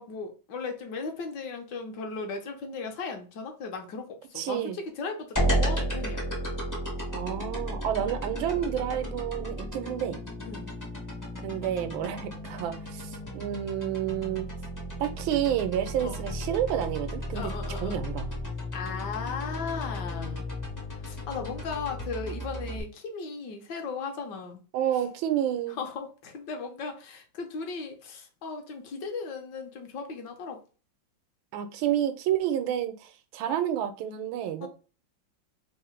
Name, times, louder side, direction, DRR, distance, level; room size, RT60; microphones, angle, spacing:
voice 1, 0.0-6.2 10.4-10.7 16.0-16.2 17.3-18.0 18.7-20.4 20.9-24.6 25.8-30.6 34.6-34.7, left 4 dB, 70° left, 1.3 m, -37 dB
voice 2, 4.4-4.8 7.1-10.2 11.4-14.5 15.0-18.3 24.7-25.8 31.5-34.7, right 10 dB, 90° right, 1.4 m, -30 dB
sound 1, 5.4-22.8, equal, 25° left, 0.3 m, -34 dB
3.7 x 2.0 x 4.3 m
omnidirectional pair, 2.1 m